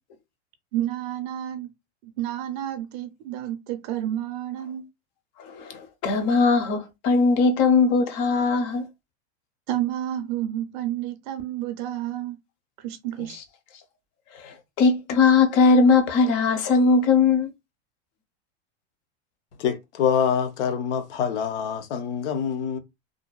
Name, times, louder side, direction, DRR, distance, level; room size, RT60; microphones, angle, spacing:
voice 1, 0.7-1.7 2.0-4.9 9.7-12.4 12.8-13.4, right 12 dB, 45° right, 0.5 m, -30 dB
voice 2, 5.4-8.9 14.4-17.5, left 4 dB, 40° left, 0.6 m, -20 dB
voice 3, 19.6-22.8, left 8 dB, 85° left, 0.7 m, -25 dB
2.6 x 2.1 x 2.2 m
supercardioid pair, 150°, 34 cm